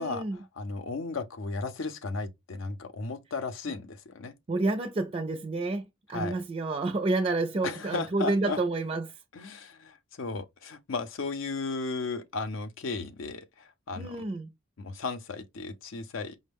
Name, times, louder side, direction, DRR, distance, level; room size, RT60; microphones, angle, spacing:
voice 1, 0.0-0.4 4.5-9.1 14.0-14.5, right 2 dB, 30° right, 0.4 m, -29 dB
voice 2, 0.6-4.3 6.1-6.4 7.6-8.6 9.3-14.2 14.8-16.4, left 3 dB, 70° left, 0.6 m, -35 dB
5.1 x 2.1 x 3.4 m
head